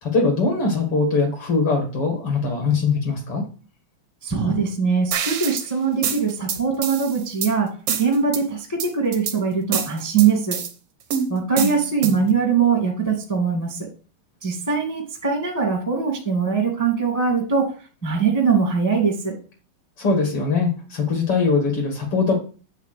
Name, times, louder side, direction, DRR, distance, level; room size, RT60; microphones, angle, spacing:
voice 1, 0.0-3.4 20.0-22.3, left 4 dB, 45° left, 2 dB, 2.1 m, -21 dB
voice 2, 4.2-7.7 8.0-10.5 11.3-13.8 14.4-17.6 18.0-19.3, right 5 dB, 10° left, -1 dB, 0.7 m, -21 dB
sound 1, 5.1-5.7 6.0-7.5 7.9-8.4 8.8-9.4 9.7-10.7 11.1-12.3, right 7 dB, 75° right, 1.4 m, -26 dB
8.9 x 3.3 x 6.6 m, 0.37 s
omnidirectional pair, 4.1 m